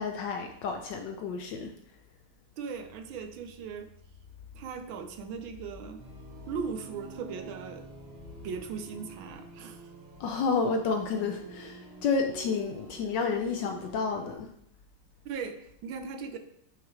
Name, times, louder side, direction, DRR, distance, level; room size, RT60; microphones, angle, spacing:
voice 1, 0.0-1.7 10.2-14.5, left 4 dB, 70° left, 4 dB, 1.1 m, -30 dB
voice 2, 2.6-3.9 4.5-6.0 6.5-7.9 8.4-9.9 15.2-16.4, right 5 dB, 75° right, 7 dB, 1.4 m, -38 dB
sound 1, 2.7-9.4, left 2 dB, 45° left, 2.2 m, -58 dB
sound 2, 6.0-14.4, right 3 dB, 30° right, 0.8 m, -48 dB
7.3 x 5.9 x 3.2 m, 0.72 s
omnidirectional pair, 2.4 m